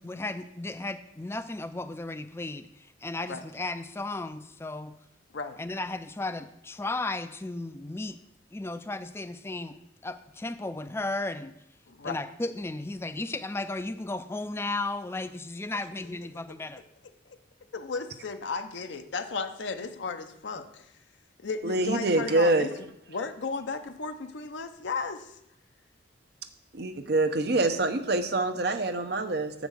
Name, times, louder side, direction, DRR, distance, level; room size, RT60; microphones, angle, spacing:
voice 1, 0.0-5.0 5.6-8.2 8.5-11.5 12.0-16.8, left 2 dB, 15° left, 11 dB, 0.3 m, -35 dB
voice 2, 11.9-12.2 17.7-20.9 21.4-22.7 23.1-25.4, left 4 dB, 75° left, 7 dB, 0.7 m, -34 dB
voice 3, 21.6-22.7 26.7-29.7, right 2 dB, 55° right, 8 dB, 0.7 m, -25 dB
7.4 x 5.1 x 6.3 m, 0.78 s
head